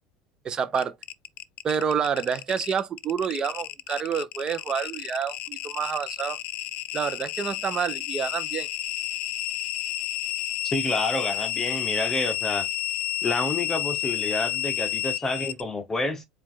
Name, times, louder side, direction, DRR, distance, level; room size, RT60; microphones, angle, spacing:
voice 1, 0.4-0.9 1.6-6.4 6.9-8.7, right 7 dB, 30° right, 0.8 m, -28 dB
sound 1, 0.7-15.6, left 13 dB, 65° left, 0.4 m, -31 dB
voice 2, 10.6-12.7 13.2-16.2, left 2 dB, 15° left, 0.9 m, -28 dB
4.7 x 2.5 x 3.7 m
supercardioid pair, 125°, 3 cm